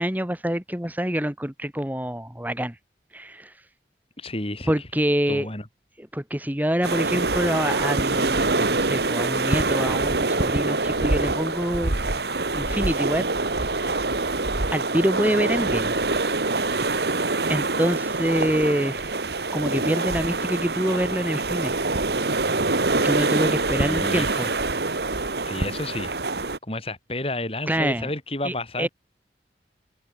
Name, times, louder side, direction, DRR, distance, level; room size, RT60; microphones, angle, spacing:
voice 1, 0.0-2.8 3.1-3.6 4.7-5.5 6.0-11.9 12.5-13.2 13.6-14.0 14.7-16.0 17.5-19.1 19.5-21.8 23.0-24.5 27.7-28.1 28.4-28.9, equal, 10° right, 1.7 m, -26 dB
voice 2, 4.2-4.7 5.3-5.7 23.7-24.5 25.4-26.1 26.6-28.9, left 1 dB, 35° left, 7.4 m, -31 dB
sound 1, 6.8-26.6, right 3 dB, 65° right, 2.0 m, -25 dB
head